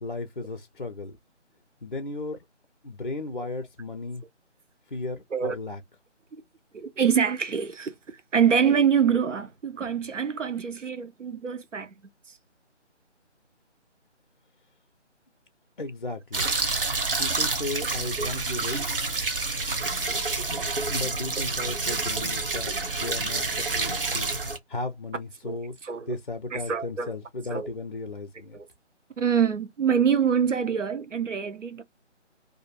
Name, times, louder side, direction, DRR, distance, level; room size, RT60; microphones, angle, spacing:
voice 1, 0.0-1.2 1.8-2.4 2.8-4.3 4.9-5.8 15.8-16.5 17.2-19.0 19.7-19.8 20.9-24.3 24.7-25.8 26.1-28.6, left 2 dB, 45° left, 0.4 m, -35 dB
voice 2, 6.7-8.0 8.3-11.9 18.2-18.3 25.4-26.2 26.5-27.1 27.5-27.7 28.5-28.7 29.2-31.8, right 7 dB, 90° right, 0.7 m, -25 dB
sound 1, 16.3-24.6, right 3 dB, 50° right, 0.7 m, -28 dB
2.5 x 2.2 x 2.5 m
figure-of-eight pair, 160°, 36 cm